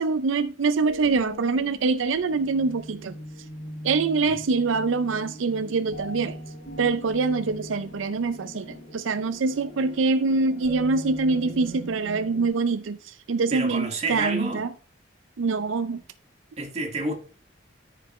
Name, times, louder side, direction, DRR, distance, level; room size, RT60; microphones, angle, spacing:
voice 1, 0.0-3.1 3.8-6.4 6.8-14.7 15.4-16.0, right 4 dB, 85° right, 0.5 m, -24 dB
sound 1, 0.8-12.5, equal, 55° left, 3.4 m, -40 dB
voice 2, 13.5-14.7 16.6-17.1, right 2 dB, 35° right, 1.7 m, -29 dB
13.0 x 5.2 x 3.1 m
head